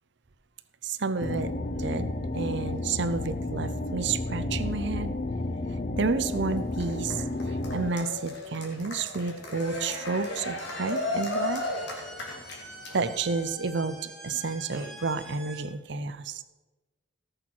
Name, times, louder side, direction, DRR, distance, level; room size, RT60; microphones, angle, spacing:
voice 1, 0.8-1.5 1.8-5.2 6.0-7.2 7.7-11.6 12.9-16.4, right 4 dB, 60° right, 12 dB, 0.7 m, -30 dB
sound 1, 1.2-7.9, left 2 dB, 40° left, 0.6 m, -32 dB
Cheering, 6.2-13.2, left 1 dB, 55° left, 2.7 m, -35 dB
sound 2, 10.6-15.6, right 1 dB, ahead, 2.2 m, -45 dB
17.5 x 6.6 x 6.1 m, 1.2 s
head